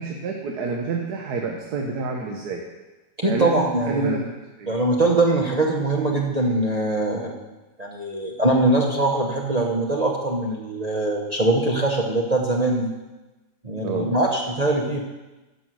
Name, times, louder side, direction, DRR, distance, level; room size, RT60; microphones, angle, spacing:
voice 1, 0.0-2.6 3.2-4.8 13.8-14.1, right 4 dB, 70° right, 1 dB, 1.5 m, -28 dB
voice 2, 3.2-4.2 4.7-7.5 7.8-12.9 13.6-15.0, right 2 dB, 30° right, -1 dB, 0.8 m, -22 dB
10.0 x 6.5 x 6.2 m, 1.1 s
omnidirectional pair, 1.8 m